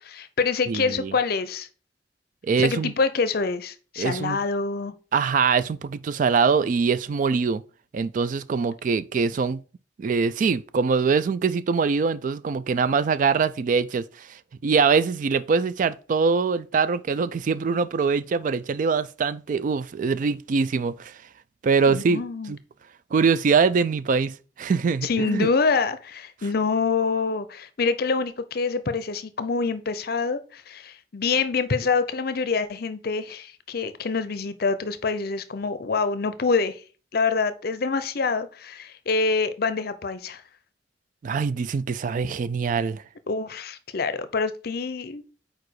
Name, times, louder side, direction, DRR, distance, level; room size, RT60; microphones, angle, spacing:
voice 1, 0.0-1.7 2.6-5.0 21.9-22.5 25.0-36.8 37.1-40.4 43.3-45.2, left 4 dB, 60° left, 0.6 m, -26 dB
voice 2, 0.7-1.1 2.4-2.9 4.0-4.4 5.1-7.6 7.9-9.6 10.0-14.3 14.6-21.1 21.6-22.2 22.5-22.6 23.1-25.5 41.2-43.0, right 5 dB, 50° right, 0.3 m, -23 dB
4.8 x 4.5 x 4.6 m
head